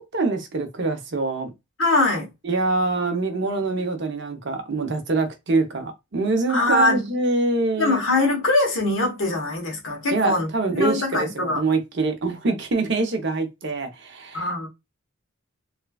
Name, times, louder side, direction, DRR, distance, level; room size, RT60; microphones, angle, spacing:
voice 1, 0.0-1.5 2.4-8.0 10.1-14.5, right 3 dB, 55° right, 0.6 m, -25 dB
voice 2, 1.8-2.3 6.5-7.1 7.8-10.5 10.8-11.6 14.3-14.7, left 2 dB, 60° left, 1.0 m, -22 dB
3.2 x 2.2 x 2.2 m
head